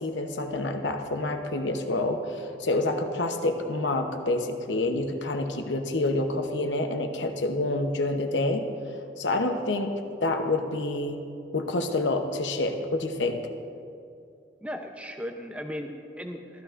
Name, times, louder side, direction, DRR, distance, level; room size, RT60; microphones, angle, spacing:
voice 1, 0.0-8.6 9.2-9.9 10.2-11.2 11.5-13.4, left 2 dB, 80° left, 5 dB, 0.9 m, -27 dB
voice 2, 14.6-16.6, equal, 5° right, 4 dB, 0.6 m, -37 dB
14.5 x 13.5 x 2.5 m, 2.5 s
head